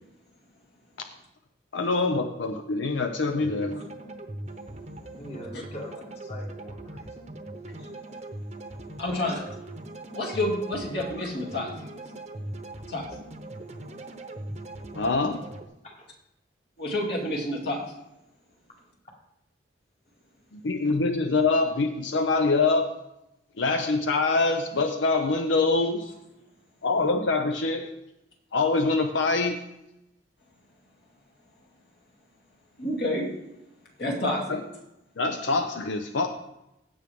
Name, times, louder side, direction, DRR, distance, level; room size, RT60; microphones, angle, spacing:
voice 1, 1.7-3.7 15.0-15.4 20.6-22.9 23.6-26.1 26.8-27.9 28.5-29.6 35.2-36.3, left 3 dB, 90° left, 6 dB, 0.7 m, -24 dB
sound 1, 3.3-15.6, right 1 dB, 35° right, 0.8 m, -40 dB
voice 2, 5.2-7.1 9.1-9.2 15.8-16.0, equal, 35° left, 0 dB, 1.7 m, -42 dB
voice 3, 9.0-9.4 10.1-11.7 12.9-13.1 16.8-17.8 32.8-33.3 34.0-34.6, left 1 dB, 60° left, -2 dB, 2.7 m, -28 dB
16.0 x 6.2 x 3.6 m, 0.88 s
head